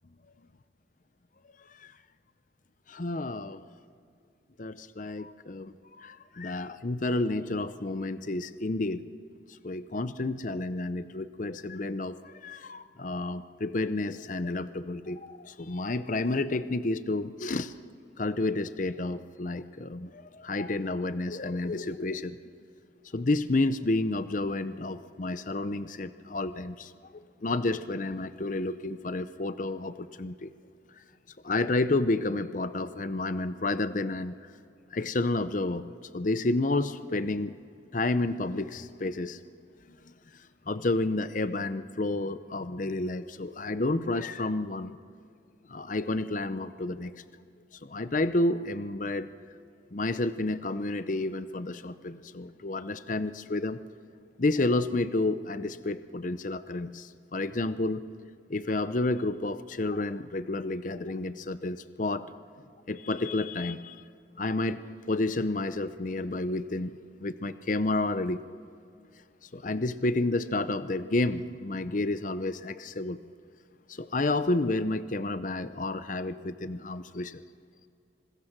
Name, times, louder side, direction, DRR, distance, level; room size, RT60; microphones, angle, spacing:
voice 1, 2.9-3.6 4.6-9.0 9.6-17.7 18.2-22.4 23.1-30.5 31.4-34.3 34.9-35.9 36.1-37.5 37.9-39.4 40.7-45.0 45.7-47.2 47.8-49.3 49.9-53.8 54.4-58.0 58.5-62.3 62.9-64.0 64.4-64.8 65.1-66.9 67.2-68.4 69.5-73.2 74.0-77.4, left 2 dB, 45° left, 13 dB, 0.7 m, -30 dB
25.5 x 20.5 x 6.1 m, 2.4 s
head